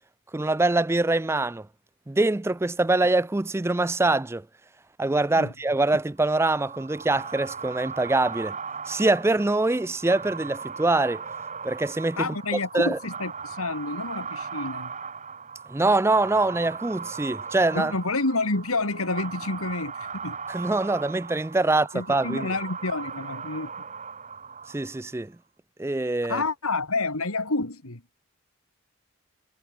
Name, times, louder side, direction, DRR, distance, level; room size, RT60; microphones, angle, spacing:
voice 1, 0.3-1.7 2.1-4.5 5.0-8.6 8.9-11.2 11.6-12.4 12.7-13.0 15.7-17.9 20.5-22.5 24.7-25.3 25.8-26.4, right 2 dB, 10° right, 0.3 m, -24 dB
sound 1, 6.2-25.1, right 6 dB, 35° right, 3.3 m, -38 dB
voice 2, 12.2-14.9 17.7-20.4 21.9-23.7 26.3-28.0, left 3 dB, 85° left, 2.9 m, -29 dB
head